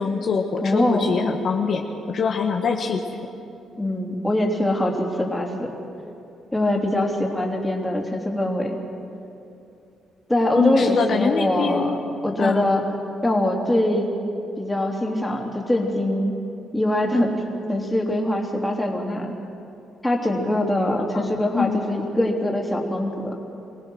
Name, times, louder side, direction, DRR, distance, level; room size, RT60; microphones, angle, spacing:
voice 1, 0.0-3.0 10.5-11.9 12.4-12.6 21.1-21.8, left 5 dB, 60° left, 2 dB, 1.4 m, -24 dB
voice 2, 0.6-1.2 3.8-5.7 6.5-8.8 10.3-12.0 12.2-12.8 13.2-14.1 14.6-16.4 16.7-17.3 17.7-19.3 20.0-23.3, left 1 dB, 10° left, 0 dB, 3.2 m, -23 dB
24.5 x 17.0 x 6.3 m, 2.7 s
cardioid pair, 90°, 0 cm